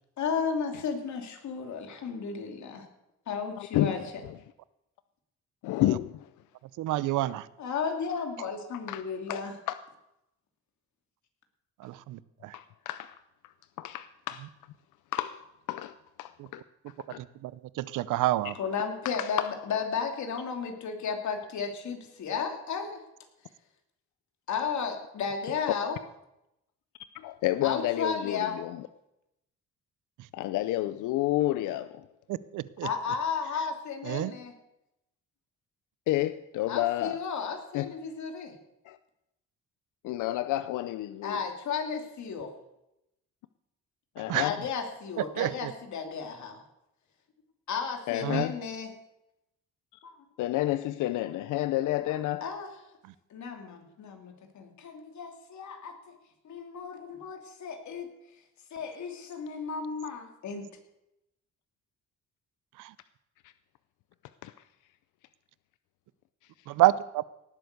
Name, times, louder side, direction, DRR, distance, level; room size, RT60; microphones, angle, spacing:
voice 1, 0.2-2.9 3.3-4.0 7.6-9.5 18.6-23.0 24.5-26.0 27.6-28.6 32.8-34.5 36.7-38.5 41.2-42.5 44.3-46.6 47.7-48.9 50.0-50.1 52.4-52.7 53.3-56.1 56.4-58.1 58.7-60.7, left 6 dB, 70° left, 2.8 m, -34 dB
voice 2, 3.6-4.4 5.6-6.3 8.9-9.0 9.3-9.4 9.7-9.8 12.5-13.2 13.4-13.5 13.8-14.5 15.1-15.4 15.7-16.6 17.1-17.2 19.0-19.5 27.1-28.9 30.3-32.1 36.1-37.2 37.7-37.9 38.9-39.0 40.0-41.4 44.2-44.6 48.1-48.5 50.4-52.4 64.4-64.5, left 15 dB, 90° left, 0.6 m, -30 dB
voice 3, 6.8-7.5 11.8-12.5 16.4-16.5 17.2-18.6 32.3-32.9 34.0-34.3 44.3-44.5 45.2-45.7 48.2-48.4 62.8-62.9 66.7-67.2, right 15 dB, 85° right, 0.7 m, -28 dB
18.0 x 8.0 x 6.7 m
cardioid pair, 90°, 30 cm